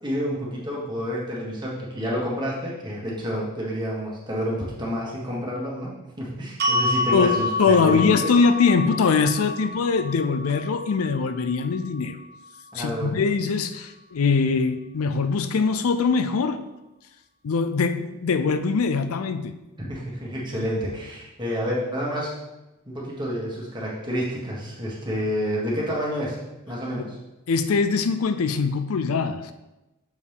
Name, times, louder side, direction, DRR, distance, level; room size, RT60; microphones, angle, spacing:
voice 1, 0.0-8.3 12.7-13.2 19.8-22.3 22.8-26.4 26.7-27.2, equal, 20° right, -4 dB, 1.6 m, -29 dB
sound 1, 6.6-12.8, left 2 dB, 50° right, 1.0 m, -29 dB
voice 2, 7.1-12.2 12.7-16.6 17.4-19.5 27.0-27.1 27.5-29.5, left 5 dB, 85° left, 9 dB, 0.5 m, -22 dB
7.1 x 4.3 x 3.6 m, 0.99 s
head